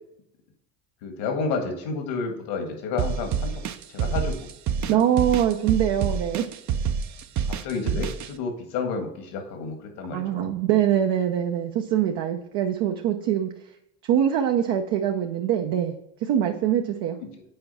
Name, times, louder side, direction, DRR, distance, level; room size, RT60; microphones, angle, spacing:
voice 1, 1.0-3.5 3.9-4.5 4.8-5.0 7.5-10.5, left 4 dB, 75° left, 4 dB, 1.8 m, -30 dB
sound 1, 3.0-8.3, right 7 dB, 35° right, 0.6 m, -27 dB
voice 2, 4.9-6.4 10.1-13.5 14.1-17.2, right 10 dB, 60° right, 3 dB, 0.9 m, -23 dB
7.7 x 4.7 x 4.2 m, 0.80 s
hypercardioid pair, 85°, 49 cm